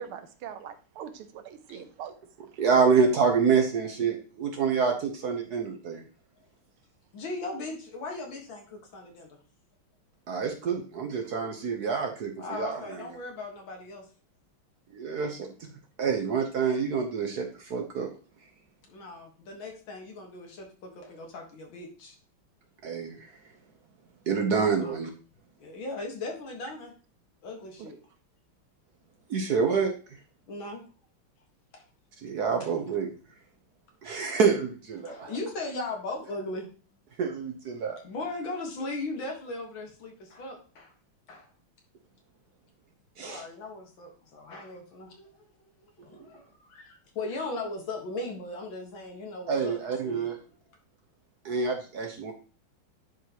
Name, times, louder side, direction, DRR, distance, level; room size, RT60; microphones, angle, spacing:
voice 1, 0.0-2.2 2.5-2.6 27.8-27.9, right 8 dB, 80° right, 1.7 m, -42 dB
voice 2, 2.6-6.0 10.3-13.0 14.9-15.3 16.0-18.1 22.8-23.3 24.3-25.1 29.3-29.9 32.2-33.1 34.0-35.3 37.2-38.0 43.2-43.4 49.5-50.4 51.4-52.3, right 5 dB, 55° right, 1.2 m, -27 dB
voice 3, 7.1-9.4 12.4-14.1 18.9-22.2 24.8-24.9 25.6-26.9 27.4-28.0 30.5-30.8 31.7-31.8 32.6-32.7 35.0-36.7 38.0-40.9 41.3-41.5 43.2-45.3 46.0-50.3, left 2 dB, 65° left, 2.3 m, -38 dB
10.5 x 4.7 x 2.9 m
omnidirectional pair, 2.4 m